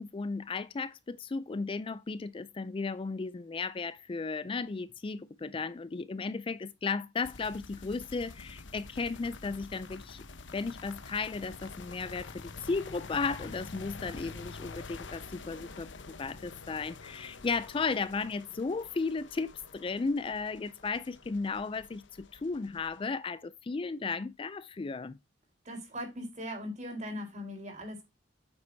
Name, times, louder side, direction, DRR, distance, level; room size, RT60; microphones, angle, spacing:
voice 1, 0.0-10.2 10.5-15.9 16.2-25.2, left 4 dB, 30° left, 0.4 m, -35 dB
sound 1, 7.2-23.0, left 4 dB, 90° left, 1.0 m, -47 dB
voice 2, 25.6-28.1, equal, 40° right, 4.0 m, -39 dB
8.7 x 7.7 x 2.7 m
head